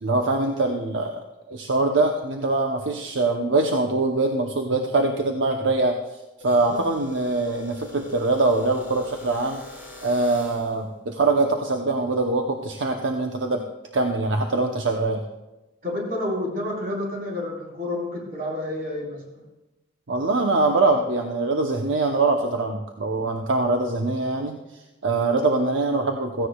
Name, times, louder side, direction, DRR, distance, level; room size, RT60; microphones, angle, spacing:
voice 1, 0.0-9.6 10.0-13.6 13.9-15.2 20.1-24.6 25.0-26.5, right 2 dB, 75° right, 3 dB, 0.8 m, -23 dB
sound 1, 6.4-10.8, left 3 dB, 10° right, 3.4 m, -43 dB
voice 2, 15.8-19.2, left 1 dB, 50° right, -3 dB, 4.2 m, -29 dB
16.5 x 15.0 x 2.3 m, 1.0 s
head